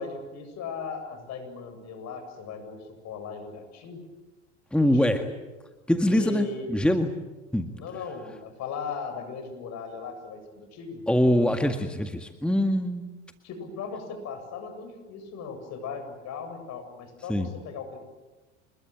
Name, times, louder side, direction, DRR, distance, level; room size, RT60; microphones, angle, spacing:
voice 1, 0.0-4.0 4.8-5.3 6.1-6.7 7.7-11.0 13.4-18.0, left 5 dB, 50° left, 7 dB, 7.8 m, -38 dB
voice 2, 4.7-5.2 5.9-7.1 7.5-7.7 11.1-13.1 17.3-17.5, left 1 dB, 5° left, 6 dB, 1.9 m, -23 dB
27.0 x 22.0 x 9.1 m, 1.2 s
hypercardioid pair, 75°, 35 cm